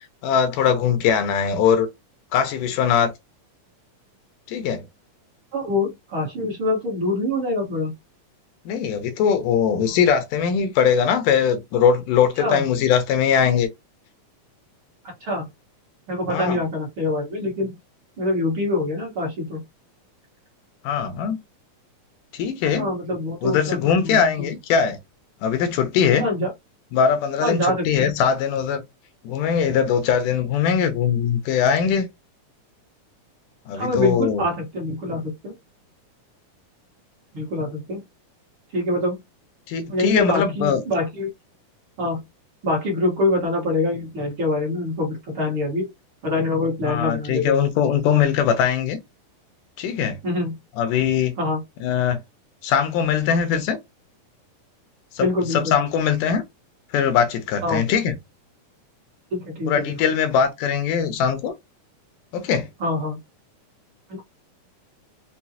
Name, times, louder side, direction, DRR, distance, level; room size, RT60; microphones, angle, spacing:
voice 1, 0.2-1.9 2.3-3.1 4.5-4.8 8.7-13.7 16.3-16.6 20.8-21.4 22.3-22.9 23.4-25.0 25.4-26.3 26.9-28.8 29.2-32.1 33.7-34.4 39.7-40.8 46.8-49.0 49.8-50.2 50.8-51.4 51.8-52.2 52.6-53.8 55.1-56.4 56.9-58.2 59.7-61.5 62.3-62.7, left 7 dB, 80° left, 2.3 m, -21 dB
voice 2, 5.5-7.9 12.4-12.6 15.2-15.4 16.1-17.8 18.2-19.6 22.8-24.5 26.2-26.5 27.4-28.1 33.7-35.5 37.3-38.0 38.7-39.2 39.9-41.3 42.0-42.2 42.6-45.9 46.2-47.9 50.2-50.6 51.4-51.6 55.2-55.8 57.6-57.9 59.3-60.0 62.8-63.2, left 2 dB, 50° right, 1.8 m, -25 dB
5.7 x 2.4 x 2.8 m
omnidirectional pair, 3.8 m